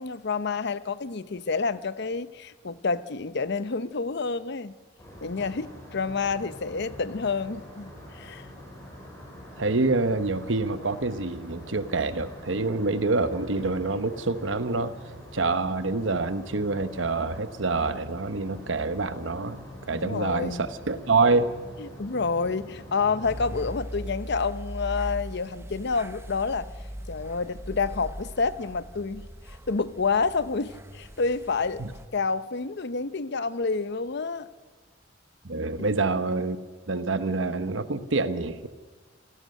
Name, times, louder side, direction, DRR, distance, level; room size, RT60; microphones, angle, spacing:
voice 1, 0.0-4.7 5.2-8.5 19.9-20.7 21.8-26.7 27.1-31.8 32.1-34.5 35.8-35.9, left 4 dB, 60° left, 0.7 m, -29 dB
sound 1, 5.0-23.7, equal, 15° left, 6.3 m, -44 dB
voice 2, 9.6-14.9 15.3-21.5 31.8-31.9 35.4-36.6 36.9-38.7, right 3 dB, 75° right, 1.1 m, -26 dB
sound 2, 23.2-32.1, equal, 15° right, 0.9 m, -40 dB
27.0 x 16.5 x 6.6 m
head